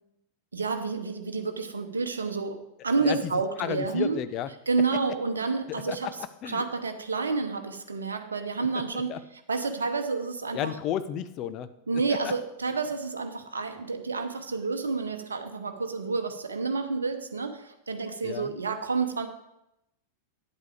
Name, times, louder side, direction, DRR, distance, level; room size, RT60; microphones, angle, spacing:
voice 1, 0.5-4.2 4.7-6.1 6.5-9.1 9.5-10.7 11.9-19.3, right 4 dB, 75° right, 7 dB, 0.8 m, -29 dB
voice 2, 3.0-3.3 3.6-4.5 5.7-6.1 6.4-6.6 8.9-9.2 10.5-11.7 12.1-12.3 18.2-18.5, left 11 dB, 35° left, 12 dB, 0.6 m, -32 dB
9.9 x 8.3 x 4.9 m, 0.86 s
figure-of-eight pair, 90°, 0 cm